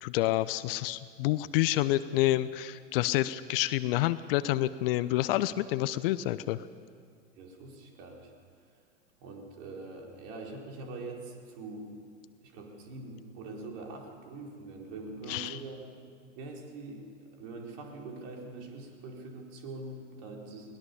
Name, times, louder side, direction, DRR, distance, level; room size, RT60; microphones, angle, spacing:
voice 1, 0.0-6.7 15.3-15.6, left 15 dB, 45° left, 16 dB, 0.8 m, -28 dB
voice 2, 7.4-8.3 9.2-11.9 12.4-15.9 16.3-20.8, right 3 dB, 50° right, 1 dB, 4.7 m, -43 dB
22.0 x 19.5 x 7.2 m, 2.2 s
figure-of-eight pair, 90°, 39 cm